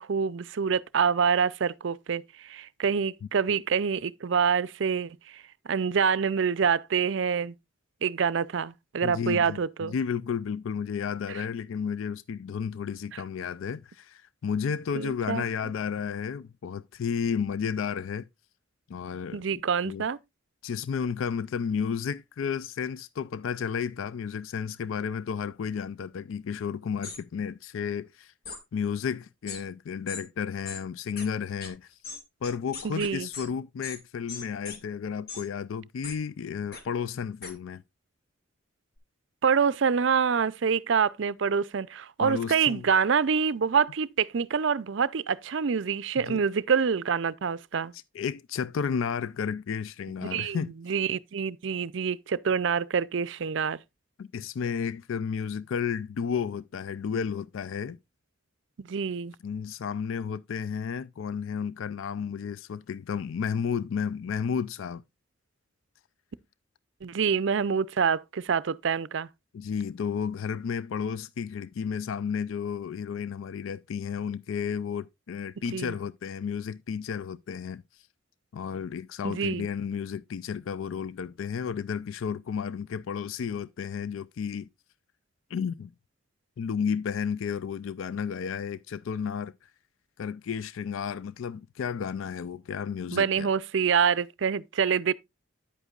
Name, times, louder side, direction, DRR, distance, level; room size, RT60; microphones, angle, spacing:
voice 1, 0.0-7.5 8.0-9.9 14.9-15.4 19.3-20.2 32.8-33.3 39.4-47.9 50.2-53.8 58.8-59.3 67.0-69.3 75.7-75.9 79.2-79.7 93.1-95.1, right 6 dB, 65° right, 0.5 m, -26 dB
voice 2, 9.0-18.3 18.9-19.4 19.8-20.0 20.6-28.3 28.7-32.0 32.4-37.8 42.2-42.8 46.2-46.4 47.9-50.7 54.2-58.0 59.4-65.0 69.5-77.8 78.5-84.7 85.5-85.9 86.6-89.5 90.2-93.5, left 6 dB, 75° left, 0.4 m, -32 dB
sound 1, 27.0-27.2 28.4-28.6 29.5-29.6 30.1-30.2 30.6-30.8 31.2-31.3 31.6-31.7 32.0-33.5 33.8-34.0 34.3-34.8 35.3-35.4 36.0-36.2 36.7-36.8 37.4-37.5, left 4 dB, 50° left, 2.0 m, -39 dB
9.9 x 8.1 x 2.4 m
head